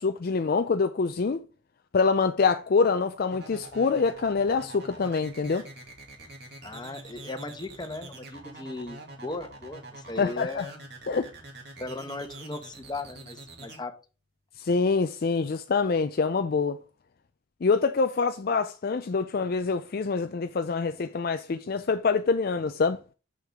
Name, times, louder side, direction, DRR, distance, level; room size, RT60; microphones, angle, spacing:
voice 1, 0.0-1.4 1.9-5.6 10.2-10.6 11.1-11.3 14.6-16.8 17.6-23.0, left 4 dB, 50° left, 0.4 m, -25 dB
sound 1, 3.3-13.8, right 2 dB, 55° right, 2.2 m, -45 dB
voice 2, 6.6-10.8 11.8-13.9, left 2 dB, 20° left, 1.0 m, -37 dB
6.6 x 6.5 x 3.5 m
head